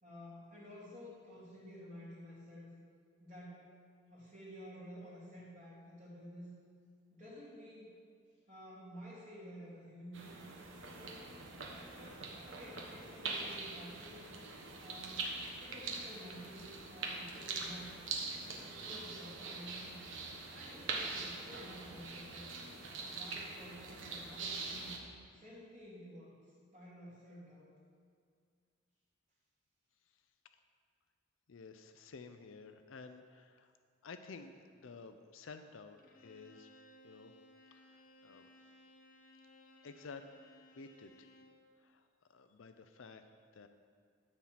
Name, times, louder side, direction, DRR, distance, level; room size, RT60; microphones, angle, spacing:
voice 1, 0.0-2.7 3.2-3.6 4.1-6.6 7.1-8.0 8.5-10.3 10.8-11.3 11.9-14.3 14.8-15.3 15.6-17.9 18.6-19.9 20.5-22.6 23.0-24.9 25.3-26.4 26.7-27.7, equal, 40° right, -10 dB, 2.9 m, -52 dB
sound 1, 10.1-25.0, right 3 dB, 75° right, 1.3 m, -43 dB
voice 2, 31.5-33.7 34.0-36.7 37.0-37.3 37.7-38.5 39.8-40.2 40.7-41.3 41.8-43.2 43.5-43.7, left 4 dB, 85° left, 8 dB, 0.5 m, -52 dB
Bowed string instrument, 36.0-41.7, left 1 dB, 45° left, 1.1 m, -61 dB
13.0 x 4.4 x 7.4 m, 2.1 s
head